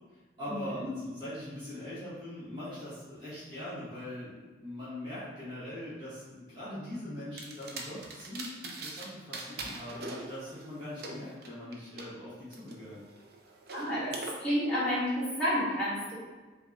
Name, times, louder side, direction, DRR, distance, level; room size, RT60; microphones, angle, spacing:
voice 1, 0.4-13.0, left 1 dB, 25° right, -11 dB, 1.2 m, -41 dB
sound 1, 7.4-9.1 9.3-12.1 12.5-14.3, right 3 dB, 55° right, 0.5 m, -42 dB
voice 2, 13.7-14.1 14.4-16.1, equal, 5° left, -12 dB, 1.5 m, -30 dB
5.2 x 2.2 x 2.6 m, 1.3 s
head